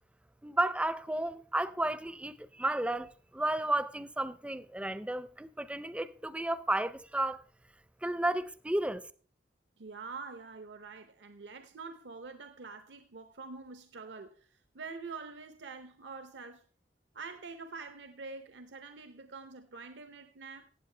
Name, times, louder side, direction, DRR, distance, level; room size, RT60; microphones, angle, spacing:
voice 1, 0.4-7.4 8.0-9.0, right 1 dB, 5° right, 0.4 m, -32 dB
voice 2, 9.8-16.7 17.1-20.7, right 4 dB, 80° right, 0.7 m, -46 dB
15.5 x 8.5 x 3.3 m
head